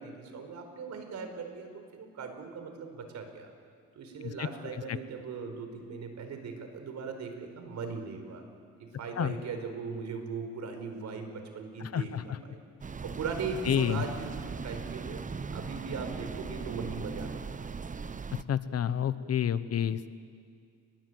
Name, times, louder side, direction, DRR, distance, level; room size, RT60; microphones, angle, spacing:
voice 1, 0.0-3.5 3.9-8.4 8.8-12.6 13.0-15.3 15.5-17.6 17.9-18.1, right 5 dB, 65° right, 6 dB, 4.5 m, -39 dB
voice 2, 11.8-12.4 13.6-14.0 18.5-20.1, left 9 dB, 55° left, 14 dB, 1.1 m, -29 dB
sound 1, 12.8-18.4, right 5 dB, 25° right, 0.9 m, -39 dB
29.0 x 21.0 x 8.0 m, 2.1 s
cardioid pair, 90°, 30 cm